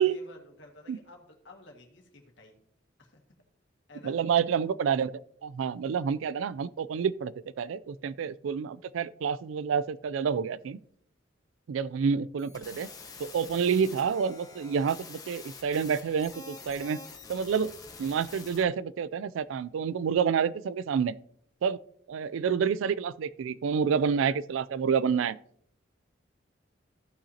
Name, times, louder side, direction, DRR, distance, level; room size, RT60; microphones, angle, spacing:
voice 1, 0.0-2.6 3.0-3.2 3.9-4.2, left 2 dB, 75° left, 1.7 m, -52 dB
voice 2, 4.0-5.1 5.4-10.8 11.7-12.9 13.2-17.0 17.3-17.7 18.0-21.1 21.6-21.8 22.1-25.4, right 6 dB, 85° right, 0.3 m, -28 dB
sound 1, 12.4-18.6, left 4 dB, 20° left, 0.9 m, -47 dB
15.0 x 5.8 x 2.8 m
head